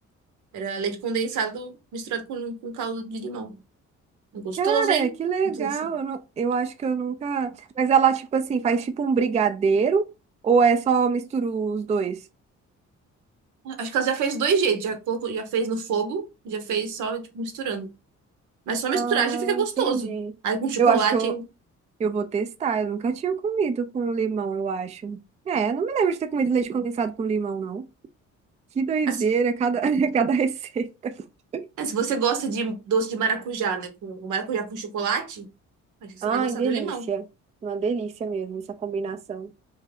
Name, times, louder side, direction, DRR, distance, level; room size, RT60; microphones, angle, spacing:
voice 1, 0.5-3.6 4.3-5.1 5.5-5.8 13.6-17.9 18.7-20.1 20.4-21.5 29.1-29.2 31.8-35.5 36.0-37.1, right 6 dB, 80° right, 0.8 m, -27 dB
voice 2, 4.6-10.1 10.4-12.2 18.9-20.3 20.8-21.3 22.0-25.2 25.5-27.9 28.8-31.1 31.5-31.7 36.2-37.2 37.6-39.5, right 5 dB, 25° right, 0.3 m, -24 dB
2.6 x 2.2 x 3.4 m
cardioid pair, 90°, 30 cm